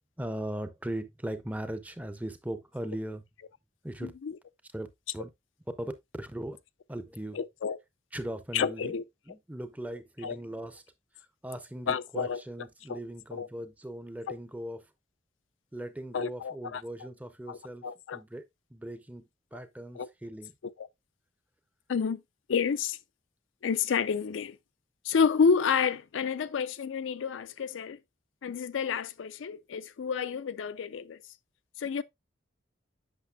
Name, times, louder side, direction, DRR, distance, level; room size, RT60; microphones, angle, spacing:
voice 1, 0.2-3.2 3.8-4.1 4.7-4.9 5.1-5.3 5.8-5.9 6.2-6.6 6.9-7.4 8.1-8.9 9.3-10.8 11.4-14.8 15.7-17.9 18.1-18.4 18.7-19.2 19.5-20.5, right 1 dB, 10° right, 0.5 m, -38 dB
voice 2, 4.0-4.4 7.3-7.8 8.5-9.0 10.2-10.4 11.9-12.4 12.9-13.0 13.3-13.5 14.3-14.4 16.1-16.8 17.5-18.2 19.5-19.6 19.9-20.1 20.6-20.9 21.9-22.2 22.5-23.0 23.6-24.6 25.0-28.0 28.4-31.2 31.8-32.0, left 6 dB, 80° left, 0.4 m, -30 dB
8.2 x 6.0 x 2.2 m
head